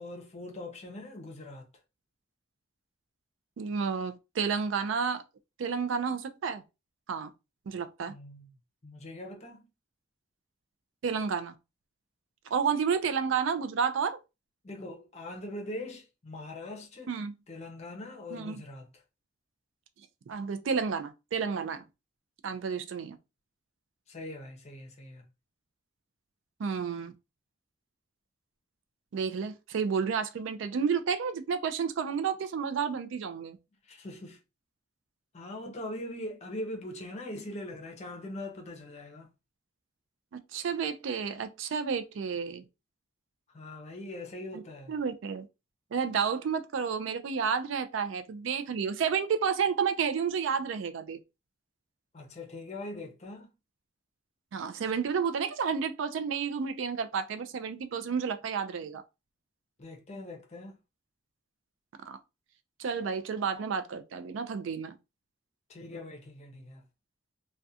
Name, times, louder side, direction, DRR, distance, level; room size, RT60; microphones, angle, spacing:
voice 1, 0.0-1.7 8.1-8.5 8.8-9.7 14.6-17.1 17.5-19.0 24.1-25.2 33.8-34.4 35.3-39.3 43.5-44.9 52.1-53.5 59.8-60.8 65.7-66.8, left 1 dB, 35° left, 0.6 m, -42 dB
voice 2, 3.6-5.2 5.6-6.6 7.1-7.3 7.7-8.1 11.0-11.5 12.5-14.2 17.1-17.3 18.3-18.6 20.3-21.8 22.4-23.2 26.6-27.1 29.1-33.6 40.5-42.6 44.5-44.6 44.9-45.5 45.9-51.2 54.5-59.0 62.1-62.2 62.8-64.9, right 6 dB, 75° right, 0.4 m, -31 dB
2.3 x 2.2 x 2.6 m
head